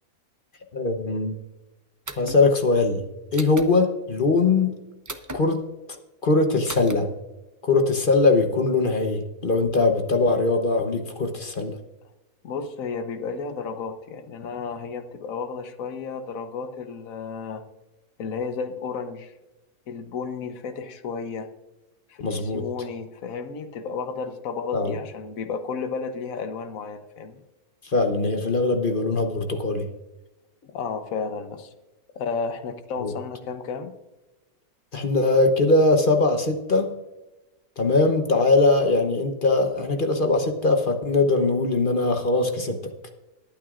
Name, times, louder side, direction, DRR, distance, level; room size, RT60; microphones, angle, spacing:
voice 1, 0.7-1.3 2.2-3.0 3.3-4.7 5.3-5.6 6.2-7.1 7.6-11.8 22.2-22.6 24.7-24.9 27.8-29.9 33.0-33.1 34.9-36.9 37.8-42.8, left 3 dB, 40° left, 5 dB, 1.0 m, -21 dB
sound 1, 2.1-2.4 3.3-3.7 5.1-5.4 6.7-7.0, right 1 dB, 30° right, 0.3 m, -36 dB
voice 2, 12.4-17.6 18.2-19.3 19.9-21.5 22.1-27.4 30.6-31.7 32.1-33.9, left 5 dB, 65° left, 8 dB, 1.3 m, -32 dB
20.5 x 9.2 x 2.5 m, 1.0 s
omnidirectional pair, 1.6 m